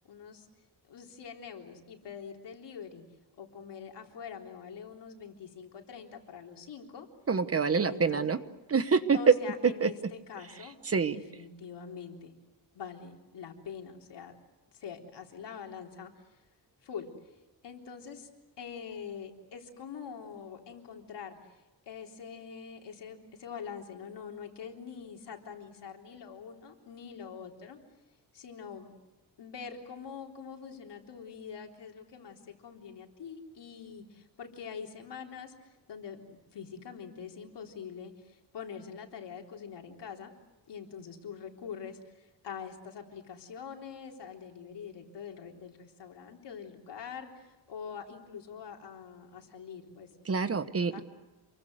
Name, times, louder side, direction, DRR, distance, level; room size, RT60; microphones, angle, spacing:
voice 1, 0.0-0.5 0.9-3.0 3.4-7.1 7.8-8.3 9.1-10.8 11.0-12.3 12.7-14.3 14.7-16.1 16.8-17.1 17.6-18.3 18.6-27.8 28.3-29.0 29.4-36.2 36.5-40.3 40.7-50.1 50.9-51.0, left 6 dB, 80° left, 2 dB, 3.8 m, -44 dB
voice 2, 7.3-8.4 8.7-9.2 9.8-9.9 10.9-11.2 50.3-51.0, right 5 dB, 35° right, 11 dB, 1.2 m, -27 dB
28.0 x 23.0 x 8.0 m, 1.0 s
wide cardioid pair, 140°, 41 cm